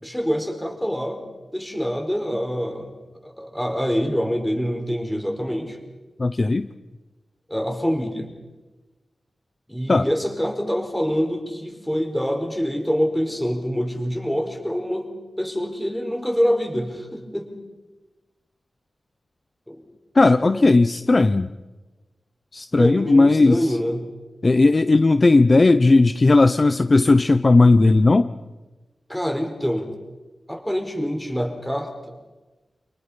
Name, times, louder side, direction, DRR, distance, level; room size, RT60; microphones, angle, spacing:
voice 1, 0.0-1.2 1.5-2.9 3.2-5.8 7.5-8.3 9.7-15.1 15.4-17.5 19.7-19.8 20.4-20.8 22.8-24.0 29.1-29.9 30.5-32.1, equal, 5° left, 4 dB, 4.9 m, -25 dB
voice 2, 6.2-6.7 9.9-10.1 20.1-21.5 22.5-23.6 24.4-28.3, left 3 dB, 35° left, 11 dB, 0.8 m, -16 dB
28.5 x 28.0 x 5.8 m, 1.2 s
wide cardioid pair, 135°, 0 cm